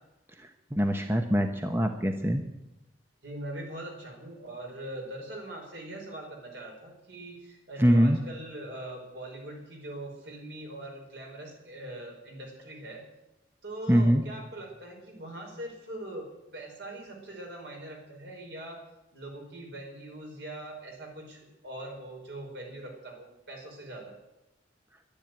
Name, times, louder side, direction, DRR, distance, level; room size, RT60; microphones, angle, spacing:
voice 1, 0.4-2.4 7.8-8.2 13.9-14.2, equal, 15° right, 5 dB, 0.9 m, -24 dB
voice 2, 3.2-13.0 13.6-18.8 19.1-24.2, right 1 dB, 65° right, 1 dB, 5.1 m, -42 dB
12.0 x 10.5 x 9.4 m, 0.92 s
head